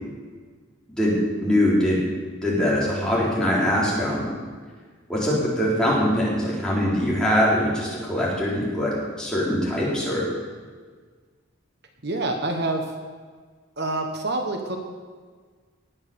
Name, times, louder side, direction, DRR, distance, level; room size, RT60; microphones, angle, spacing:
voice 1, 1.0-2.0 2.4-4.3 5.1-10.3, equal, 5° left, -7 dB, 4.0 m, -22 dB
voice 2, 12.0-12.9 13.8-14.8, right 2 dB, 55° right, 4 dB, 1.3 m, -26 dB
19.0 x 7.3 x 7.0 m, 1.5 s
head